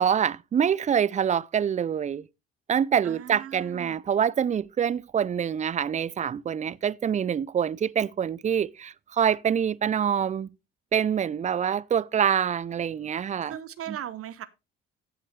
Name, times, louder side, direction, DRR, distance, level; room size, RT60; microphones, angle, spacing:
voice 1, 0.0-2.2 2.7-10.5 10.9-13.6 13.9-14.0, right 8 dB, 25° right, 0.5 m, -25 dB
voice 2, 3.0-4.0 13.5-14.5, right 10 dB, 45° right, 0.8 m, -38 dB
15.0 x 7.5 x 3.2 m
hypercardioid pair, 55°, 31 cm